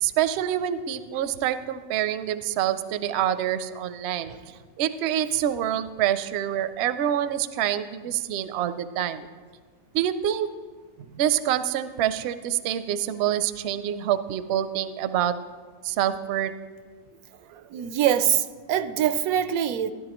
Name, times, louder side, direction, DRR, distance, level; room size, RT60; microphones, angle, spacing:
voice 1, 0.0-4.3 4.8-9.3 9.9-10.5 11.2-15.3 15.8-16.5, right 11 dB, 65° right, 0.7 m, -26 dB
voice 2, 17.5-19.9, right 10 dB, 90° right, 1.1 m, -24 dB
16.0 x 10.5 x 3.0 m
omnidirectional pair, 1.5 m